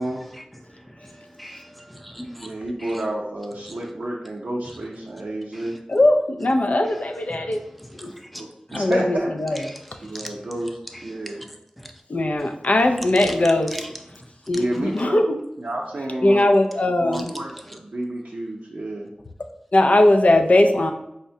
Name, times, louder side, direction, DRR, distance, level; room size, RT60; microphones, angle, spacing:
voice 1, 0.3-2.5 2.8-3.0 3.6-3.8 4.6-4.8 5.5-5.8 7.3-8.4 8.7-8.8 9.7-9.8 10.1-10.5 10.9-11.5 11.8-11.9 13.3-13.4 13.7-13.9 14.2-14.3 14.5-14.6 17.1-17.2, equal, ahead, 4 dB, 0.4 m, -40 dB
voice 2, 2.4-5.8 8.3-9.3 10.0-10.7 11.0-11.4 13.4-13.5 14.5-15.2 15.6-16.5 17.0-19.1, right 1 dB, 80° right, -4 dB, 0.5 m, -30 dB
voice 3, 5.9-7.6 7.9-8.1 8.7-9.6 12.1-13.8 14.5-15.4 15.9-17.4 19.7-20.9, left 1 dB, 65° left, 5 dB, 0.4 m, -19 dB
4.8 x 2.1 x 2.7 m, 0.83 s
wide cardioid pair, 50°, 3 cm